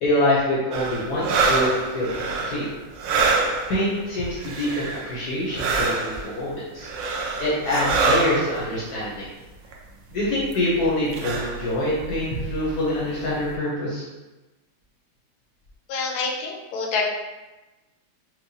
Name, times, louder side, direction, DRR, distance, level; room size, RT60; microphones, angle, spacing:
voice 1, 0.0-2.6 3.7-6.9 7.4-9.3 10.1-14.1, left 1 dB, 60° left, -7 dB, 1.0 m, -25 dB
sound 1, 0.7-3.9 4.4-5.1 5.5-6.4 6.8-8.7 9.7-9.8 10.3-10.5 10.8-10.9 11.1-13.0 13.5-13.6, right 4 dB, 75° right, 1.1 m, -25 dB
voice 2, 15.9-17.0, left 4 dB, 80° left, 0 dB, 1.5 m, -27 dB
4.6 x 2.2 x 2.7 m, 1.1 s
omnidirectional pair, 2.4 m